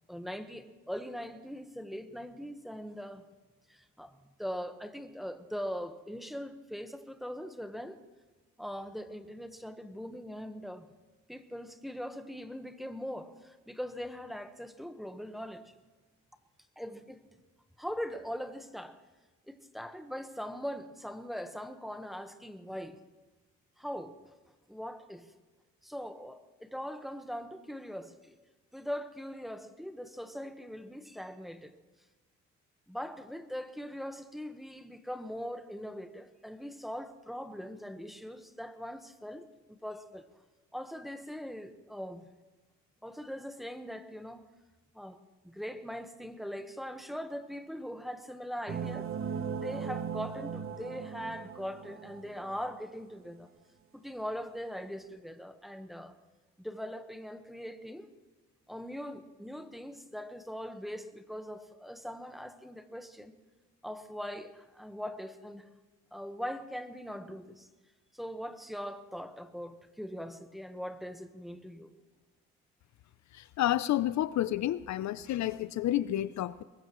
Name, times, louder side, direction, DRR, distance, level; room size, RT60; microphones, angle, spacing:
voice 1, 0.1-3.2 3.7-4.1 4.4-8.0 8.6-10.9 11.3-15.7 16.8-17.2 17.8-19.0 19.5-23.0 23.8-24.2 24.7-25.3 25.8-28.4 28.7-31.7 32.9-40.3 40.7-42.3 43.0-44.4 44.9-45.2 45.4-49.1 49.6-53.5 53.9-56.1 56.6-58.1 58.7-63.3 63.8-65.7 66.1-67.7 68.1-71.9, equal, ahead, 8 dB, 1.2 m, -41 dB
sound 1, 48.7-52.7, right 7 dB, 45° right, 1.1 m, -38 dB
voice 2, 73.3-76.6, left 13 dB, 65° left, 15 dB, 0.5 m, -30 dB
22.5 x 20.5 x 3.1 m, 1.2 s
cardioid pair, 90°, 30 cm